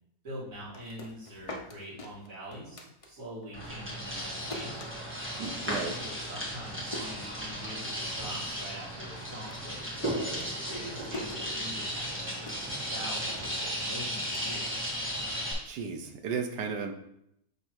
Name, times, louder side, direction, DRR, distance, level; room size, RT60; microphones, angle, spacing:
voice 1, 0.2-4.7 5.5-12.5 12.9-14.9, equal, 50° right, -7 dB, 2.6 m, -44 dB
sound 1, 0.5-3.5 3.7-7.9 8.2-8.8 9.1-15.3, left 1 dB, 60° left, 0.3 m, -46 dB
sound 2, 3.5-15.5, equal, 5° right, 1.5 m, -35 dB
voice 2, 5.4-6.0 15.7-16.9, right 5 dB, 85° right, 6 dB, 1.4 m, -34 dB
6.6 x 3.3 x 4.5 m, 0.77 s
omnidirectional pair, 1.8 m